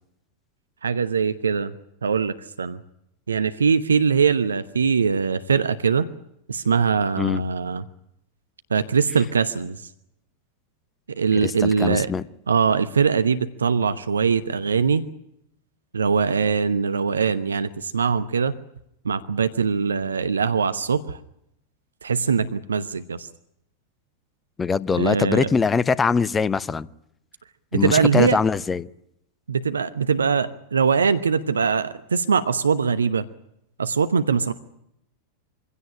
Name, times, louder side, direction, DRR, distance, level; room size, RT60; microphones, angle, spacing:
voice 1, 0.8-1.7 2.0-2.8 3.3-6.1 6.5-7.8 8.7-9.9 11.1-12.1 12.5-15.0 15.9-18.5 19.0-21.2 22.0-23.3 25.0-25.5 27.7-28.4 29.5-33.2 33.8-34.5, right 6 dB, 70° right, 12 dB, 0.9 m, -22 dB
voice 2, 11.4-12.2 24.6-26.9 27.7-28.9, left 5 dB, 15° left, 20 dB, 0.8 m, -22 dB
24.0 x 17.0 x 10.0 m, 0.79 s
figure-of-eight pair, 90°, 0 cm